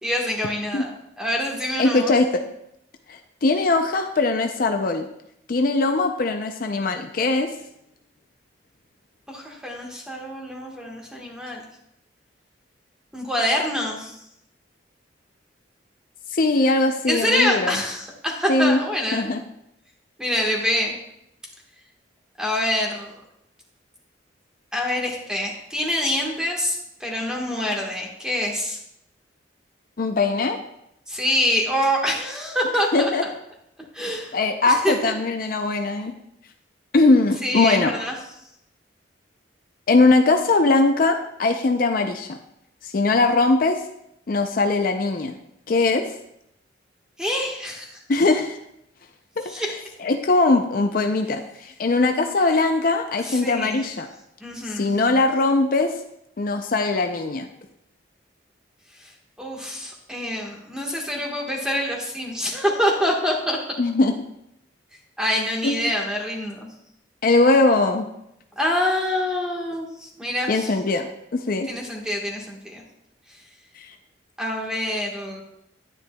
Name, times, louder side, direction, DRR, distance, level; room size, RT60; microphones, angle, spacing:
voice 1, 0.0-2.1 9.3-11.6 13.1-14.2 17.1-19.3 20.2-20.9 22.4-23.1 24.7-28.8 31.1-33.3 33.9-34.4 34.7-35.1 37.4-38.1 47.2-47.9 49.4-49.7 53.2-53.9 54.4-54.9 59.0-59.1 59.4-63.6 65.2-66.7 68.6-70.7 71.7-72.8 73.3-73.4 74.4-75.4, left 1 dB, 5° right, -2 dB, 1.3 m, -26 dB
voice 2, 1.8-2.4 3.1-5.1 5.5-7.5 16.3-17.8 18.5-18.8 19.1-19.4 30.0-30.6 32.9-33.2 34.3-36.1 36.9-37.9 39.9-42.4 42.8-43.8 44.3-45.3 45.7-46.1 48.1-48.6 49.4-49.5 50.0-54.1 54.6-56.0 56.4-57.5 63.8-64.1 65.6-65.9 67.2-68.1 70.5-71.7 73.8-73.9, left 3 dB, 50° left, 5 dB, 0.5 m, -20 dB
10.0 x 9.6 x 2.2 m, 0.80 s
head